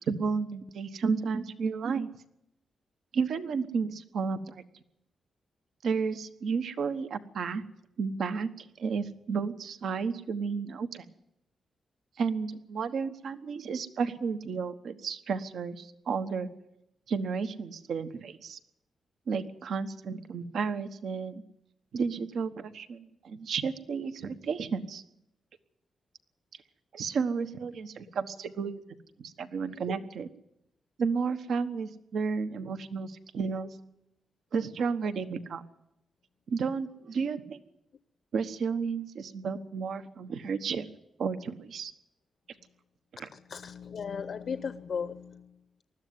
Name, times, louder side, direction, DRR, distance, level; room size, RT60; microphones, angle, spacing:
voice 1, 0.1-2.1 3.1-4.6 5.8-7.6 8.0-11.0 12.2-16.5 17.1-18.6 19.3-21.4 21.9-25.0 26.9-28.8 29.2-30.3 31.0-33.8 34.5-35.6 36.5-37.6 38.3-40.9 41.2-41.9 43.2-43.3, right 5 dB, 75° right, 10 dB, 1.2 m, -32 dB
voice 2, 43.3-45.5, left 6 dB, 65° left, 11 dB, 0.8 m, -36 dB
20.0 x 13.5 x 9.5 m, 0.84 s
cardioid pair, 95°, 0 cm